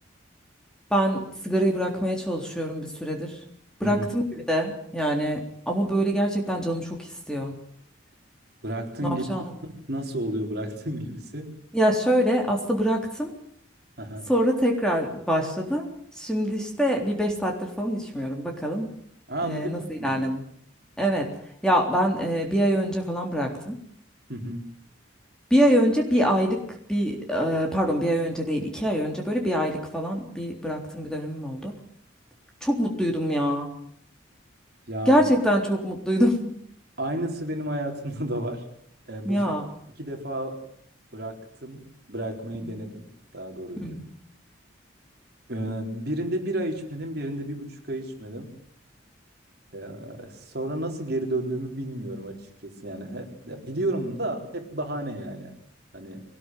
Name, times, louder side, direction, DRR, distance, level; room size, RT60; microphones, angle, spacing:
voice 1, 0.9-3.4 3.8-4.2 4.5-7.5 9.0-9.5 11.7-13.3 14.3-18.9 19.4-20.4 21.0-21.3 21.6-23.8 25.5-31.7 32.6-33.7 35.1-36.5 39.3-39.7 42.6-42.8 43.8-44.0, equal, 5° left, 1 dB, 3.6 m, -25 dB
voice 2, 8.6-9.3 9.6-11.6 14.0-14.3 19.3-20.2 24.3-24.7 34.9-35.2 37.0-38.6 39.1-39.5 40.0-40.6 41.1-44.0 45.5-48.5 49.7-55.5 55.9-56.2, right 1 dB, 50° right, 3 dB, 4.2 m, -32 dB
22.5 x 19.5 x 9.3 m, 0.66 s
head